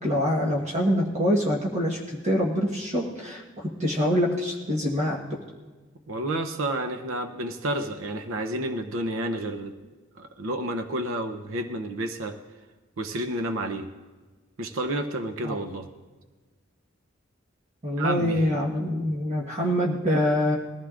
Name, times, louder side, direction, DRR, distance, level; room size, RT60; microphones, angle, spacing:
voice 1, 0.0-5.2 15.4-15.6 17.8-20.6, equal, 35° right, -2 dB, 1.3 m, -25 dB
voice 2, 6.1-9.7 10.2-12.4 13.0-13.9 14.6-15.9 18.0-18.5, right 1 dB, 80° right, 6 dB, 0.7 m, -30 dB
21.0 x 15.0 x 2.5 m, 1.3 s
head